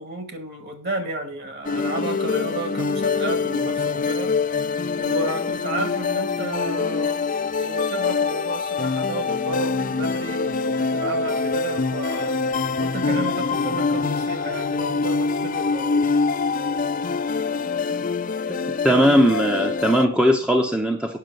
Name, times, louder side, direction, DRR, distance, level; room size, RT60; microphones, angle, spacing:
voice 1, 0.0-4.3 5.0-12.4 12.8-16.1, right 2 dB, 50° right, 6 dB, 2.4 m, -32 dB
sound 1, 1.6-20.1, left 4 dB, 40° left, 0.5 m, -24 dB
voice 2, 18.8-21.2, equal, 5° right, 3 dB, 0.9 m, -19 dB
9.4 x 6.5 x 6.5 m, 0.42 s
head